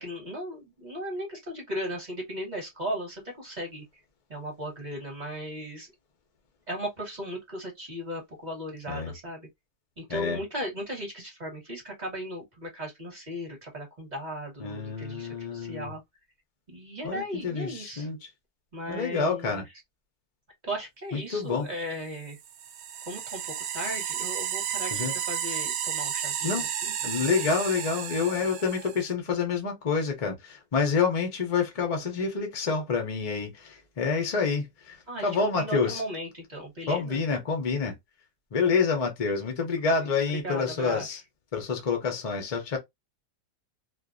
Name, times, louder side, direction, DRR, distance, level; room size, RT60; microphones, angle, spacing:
voice 1, 0.0-3.8 4.3-5.9 6.7-9.5 10.0-16.0 16.7-18.1 18.7-19.6 20.6-22.4 23.1-23.4 23.7-26.9 27.4-27.5 35.1-37.2 40.3-41.2, equal, 35° right, 1.0 m, -36 dB
voice 2, 14.6-15.9 17.0-18.2 18.9-19.6 21.1-21.7 24.9-25.1 26.4-26.7 27.0-35.0 35.2-36.0 36.9-37.9 38.5-41.2 41.5-42.8, left 5 dB, 50° left, 0.4 m, -28 dB
sound 1, 22.3-29.1, right 9 dB, 80° right, 1.0 m, -32 dB
2.5 x 2.2 x 2.4 m
omnidirectional pair, 1.5 m